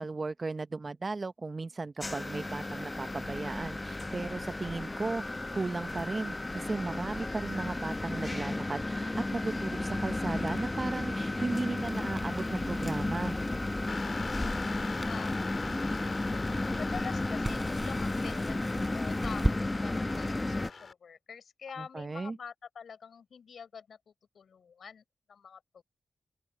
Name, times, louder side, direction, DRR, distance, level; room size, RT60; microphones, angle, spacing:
voice 1, 0.0-5.2 5.5-13.4 21.8-22.4, right 3 dB, 35° right, 0.9 m, -36 dB
sound 1, 2.0-20.7, left 2 dB, 25° left, 0.8 m, -33 dB
Crackle, 11.7-19.6, right 1 dB, 10° right, 4.8 m, -40 dB
sound 2, 13.9-20.9, left 4 dB, 50° left, 4.9 m, -43 dB
voice 2, 14.1-25.8, left 6 dB, 70° left, 6.5 m, -47 dB
open air
cardioid pair, 75°, 0 cm